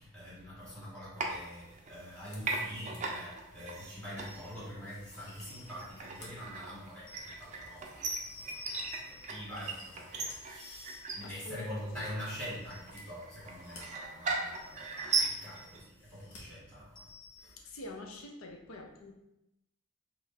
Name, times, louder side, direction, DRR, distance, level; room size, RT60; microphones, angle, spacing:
voice 1, 0.0-17.1 17.4-17.6, equal, 5° left, -9 dB, 1.3 m, -45 dB
sound 1, 1.2-2.1 2.4-15.8, right 4 dB, 35° right, 0.4 m, -38 dB
sound 2, 2.2-3.2 3.6-3.7 4.2-4.4 4.8-6.5 6.9-9.0 9.4-10.4 10.6-10.7 12.7-13.8 14.6-14.7 14.9-15.6 15.9-16.4 16.7-16.8, left 2 dB, 80° left, 0.9 m, -57 dB
sound 3, 4.3-4.7 5.4-6.1 7.1-7.4 8.3-9.4 10.6-11.2 12.4-13.0 14.5-15.9 17.0-17.7, left 3 dB, 25° left, 0.6 m, -52 dB
voice 2, 11.2-12.1 17.6-19.1, left 2 dB, 65° left, 2 dB, 0.6 m, -46 dB
3.0 x 2.5 x 4.1 m, 0.87 s
head